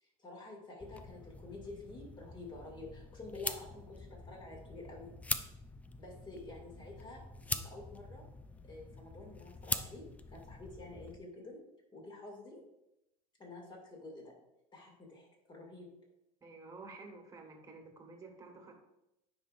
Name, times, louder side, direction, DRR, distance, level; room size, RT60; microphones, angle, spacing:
voice 1, 0.0-5.1 6.0-8.2 8.6-11.6 11.9-12.6 13.4-14.3 14.7-15.9, left 2 dB, 25° left, 0 dB, 2.3 m, -49 dB
sound 1, 0.8-11.2, left 3 dB, 10° left, 0.3 m, -43 dB
voice 2, 16.4-18.7, right 3 dB, 20° right, 1 dB, 1.6 m, -51 dB
9.4 x 5.2 x 2.5 m, 0.86 s
supercardioid pair, 120°, 20 cm